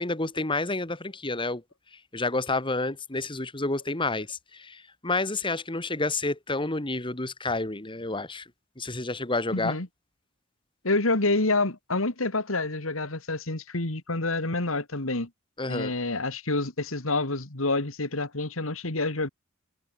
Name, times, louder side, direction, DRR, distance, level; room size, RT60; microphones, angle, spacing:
voice 1, 0.0-1.6 2.1-8.5 8.8-9.8 15.6-15.9, left 2 dB, 25° left, 2.2 m, -29 dB
voice 2, 9.5-9.9 10.8-15.3 15.7-19.3, left 2 dB, 80° left, 2.8 m, -28 dB
head